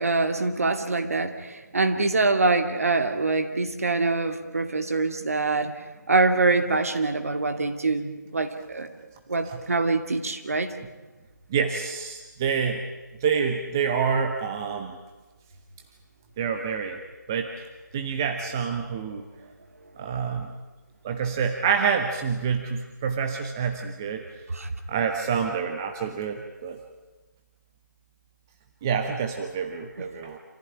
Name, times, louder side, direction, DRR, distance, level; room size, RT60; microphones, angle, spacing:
voice 1, 0.0-5.8 6.1-8.9 9.3-10.7 24.5-24.7, right 3 dB, 50° right, 6 dB, 2.5 m, -24 dB
voice 2, 11.5-12.8 13.2-15.0 16.4-17.0 17.3-17.7 17.9-19.2 20.0-20.5 21.0-24.4 24.9-26.8 28.8-30.4, right 6 dB, 10° right, 5 dB, 0.7 m, -27 dB
27.5 x 15.0 x 9.9 m, 1.2 s
figure-of-eight pair, 170°, 10 cm